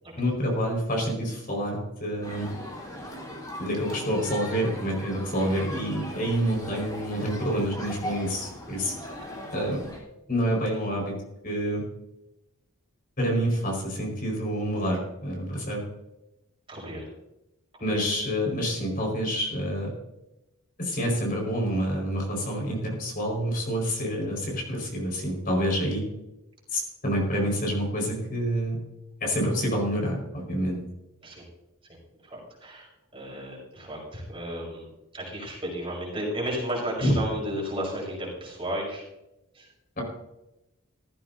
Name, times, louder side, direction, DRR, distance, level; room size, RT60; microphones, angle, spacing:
voice 1, 0.2-2.5 3.6-8.9 9.5-9.8 10.3-11.1 11.4-11.8 13.2-15.8 17.8-19.9 20.8-26.0 26.7-28.8 29.2-30.8 37.0-37.1, equal, 40° left, 0 dB, 5.0 m, -27 dB
sound 1, 2.2-10.0, equal, 20° left, 3.8 m, -39 dB
voice 2, 16.7-17.1 17.7-18.1 31.2-31.4 32.2-39.0 39.5-39.7, equal, 25° right, -3 dB, 5.7 m, -33 dB
16.5 x 15.0 x 2.7 m, 0.92 s
head